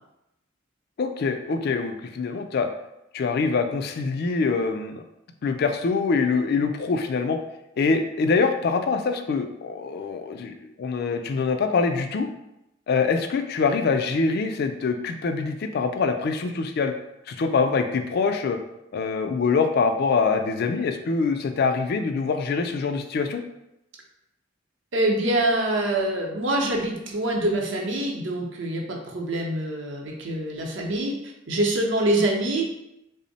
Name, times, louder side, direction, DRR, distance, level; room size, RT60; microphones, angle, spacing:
voice 1, 1.0-2.7 3.1-5.0 5.4-7.4 7.8-12.3 12.9-16.9 17.3-18.6 18.9-23.4, left 4 dB, 55° left, 6 dB, 0.3 m, -24 dB
voice 2, 24.9-31.1 31.5-32.7, right 1 dB, 65° right, 0 dB, 0.7 m, -25 dB
3.4 x 2.0 x 4.0 m, 0.88 s
head